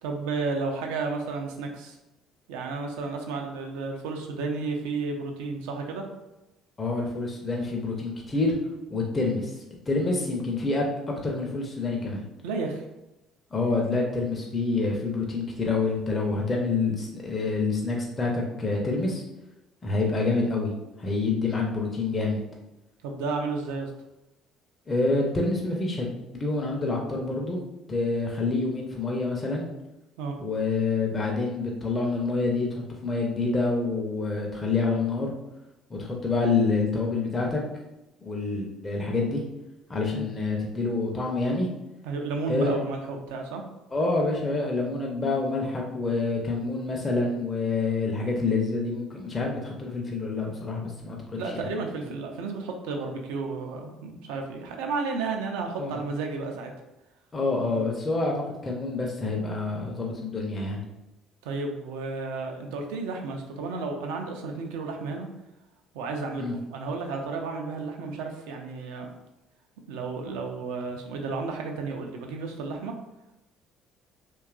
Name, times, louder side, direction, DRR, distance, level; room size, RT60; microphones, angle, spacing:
voice 1, 0.0-2.0 2.5-6.0 12.4-12.9 23.0-23.9 30.2-30.4 40.1-40.3 42.0-43.6 51.4-56.7 61.4-65.3 65.9-69.1 69.9-72.9, right 4 dB, 70° right, 3 dB, 0.4 m, -32 dB
voice 2, 6.8-8.5 8.9-9.5 9.9-10.8 11.2-12.2 13.5-19.2 19.8-20.7 21.0-22.4 24.9-26.1 26.3-27.6 27.9-29.7 30.4-35.3 35.9-37.6 38.2-39.4 39.9-41.7 42.5-42.8 43.9-51.2 51.5-51.7 55.8-56.0 57.3-60.8 66.4-66.5, left 3 dB, 25° left, -1 dB, 0.5 m, -27 dB
2.8 x 2.3 x 2.4 m, 0.96 s
figure-of-eight pair, 55°, 0 cm